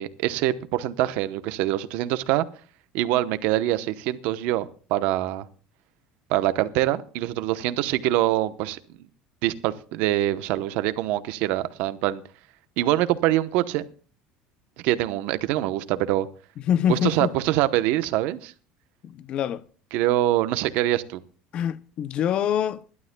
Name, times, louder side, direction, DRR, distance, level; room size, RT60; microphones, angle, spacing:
voice 1, 0.0-2.5 2.9-5.5 6.3-8.8 9.4-12.2 12.8-13.9 14.8-16.3 16.9-18.5 19.9-21.2, right 14 dB, 65° right, 0.9 m, -24 dB
voice 2, 16.7-17.3 19.0-19.6 21.5-22.8, left 9 dB, 40° left, 0.6 m, -25 dB
27.0 x 12.0 x 2.2 m
cardioid pair, 165°, 3 cm